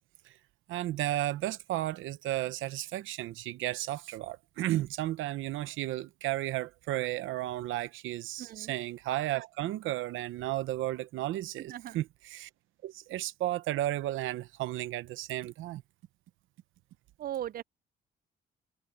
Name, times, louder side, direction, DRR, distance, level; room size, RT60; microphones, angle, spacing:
voice 1, 0.7-12.5 12.8-15.8, right 14 dB, 90° right, 0.9 m, -33 dB
voice 2, 8.4-8.7 11.7-12.0 17.2-17.6, right 11 dB, 50° right, 0.4 m, -38 dB
cardioid pair, 90°, 20 cm